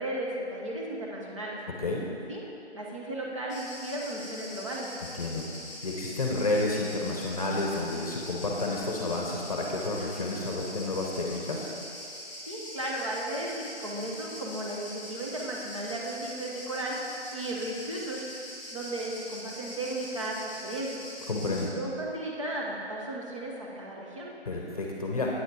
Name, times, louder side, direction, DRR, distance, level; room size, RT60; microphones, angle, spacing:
voice 1, 0.0-1.6 2.3-2.4 2.7-4.9 12.4-17.0 17.3-18.3 18.7-21.0 21.7-24.3, right 1 dB, 30° right, -3 dB, 1.2 m, -35 dB
Insect, 3.5-21.6, left 1 dB, 5° left, 2.2 m, -43 dB
voice 2, 5.1-5.4 5.8-11.7 21.3-21.7 24.5-25.3, left 2 dB, 35° left, -1 dB, 1.0 m, -30 dB
9.1 x 7.6 x 4.8 m, 2.7 s
figure-of-eight pair, 170°, 34 cm